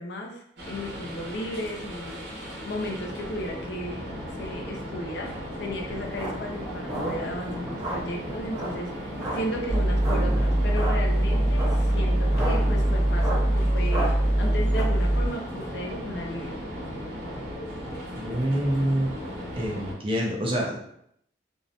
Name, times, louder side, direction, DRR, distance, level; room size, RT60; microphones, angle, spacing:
voice 1, 0.0-4.0 4.3-5.3 5.6-14.1 14.4-16.5, equal, 65° left, 1 dB, 0.4 m, -35 dB
sound 1, 0.6-19.9, equal, 70° right, 0.9 m, -36 dB
sound 2, 6.0-14.8, right 1 dB, 15° right, 1.1 m, -34 dB
sound 3, 9.7-15.3, right 1 dB, 80° left, 0.8 m, -23 dB
voice 2, 18.2-19.1 19.6-20.8, equal, 30° right, -1 dB, 0.5 m, -26 dB
2.6 x 2.1 x 2.7 m, 0.72 s
head